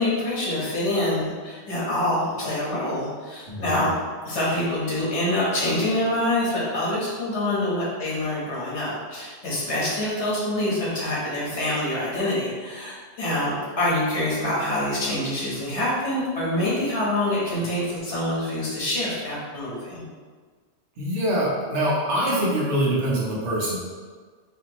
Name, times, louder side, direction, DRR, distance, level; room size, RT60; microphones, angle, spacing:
voice 1, 0.0-3.9 4.2-20.0, left 1 dB, 85° left, -6 dB, 1.5 m, -26 dB
voice 2, 3.5-3.9 21.0-23.8, right 1 dB, 80° right, -6 dB, 1.3 m, -24 dB
4.3 x 2.7 x 2.9 m, 1.5 s
omnidirectional pair, 1.1 m